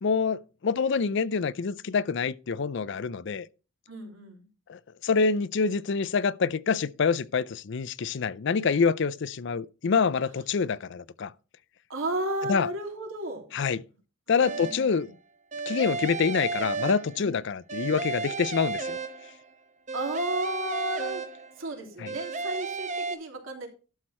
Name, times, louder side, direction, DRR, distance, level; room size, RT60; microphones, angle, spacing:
voice 1, 0.0-3.5 4.7-11.3 12.5-12.7 13.5-13.8 14.3-15.1 15.7-19.0 22.0-22.1, left 5 dB, 60° left, 0.5 m, -26 dB
voice 2, 3.9-4.4 11.9-13.4 14.3-15.1 17.2-17.3 19.9-21.2 21.6-23.7, right 1 dB, 75° right, 3.1 m, -33 dB
sound 1, 14.4-15.0 15.5-17.4 17.7-19.5 19.9-21.7 22.0-23.1, right 4 dB, 35° right, 1.0 m, -33 dB
12.0 x 6.5 x 4.3 m
head